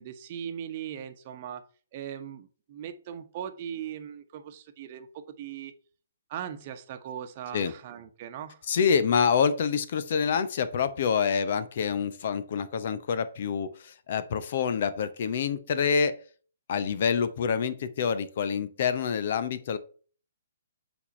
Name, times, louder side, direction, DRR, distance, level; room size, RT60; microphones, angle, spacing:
voice 1, 0.0-1.6 1.9-5.7 6.3-8.6, right 9 dB, 35° right, 7 dB, 1.0 m, -39 dB
voice 2, 8.7-16.2 16.7-19.8, left 6 dB, 50° left, 13 dB, 0.8 m, -27 dB
8.4 x 3.6 x 5.3 m, 0.41 s
figure-of-eight pair, 125°, 0 cm